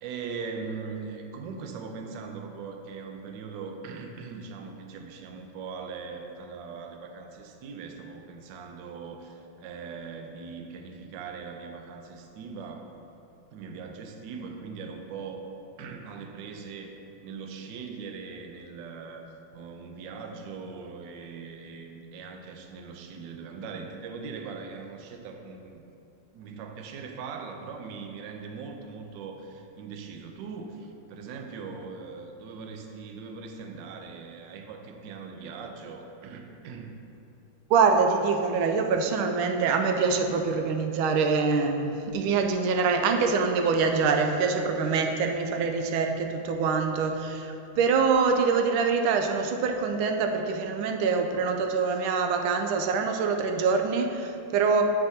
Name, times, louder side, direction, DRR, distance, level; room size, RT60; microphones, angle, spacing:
voice 1, 0.0-12.9 13.5-15.4 15.8-16.9 17.2-25.8 26.3-37.0, right 5 dB, 70° right, 4 dB, 1.2 m, -40 dB
voice 2, 37.7-54.8, right 5 dB, 90° right, 4 dB, 1.4 m, -25 dB
8.1 x 7.7 x 2.7 m, 2.7 s
omnidirectional pair, 2.2 m